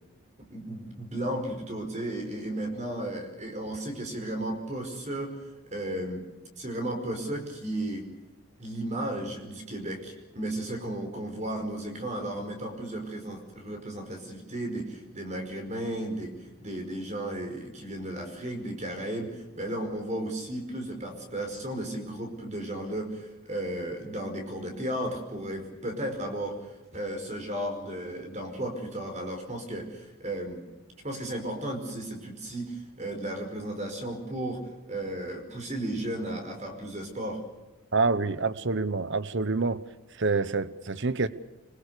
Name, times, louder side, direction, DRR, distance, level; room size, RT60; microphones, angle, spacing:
voice 1, 0.4-5.4 5.7-6.2 6.6-8.0 8.6-16.3 16.6-30.6 31.0-34.6 34.9-37.4, right 1 dB, 30° right, 4.9 m, -34 dB
voice 2, 37.9-39.8 40.1-41.3, right 3 dB, 55° right, 0.9 m, -27 dB
26.0 x 22.0 x 6.8 m
head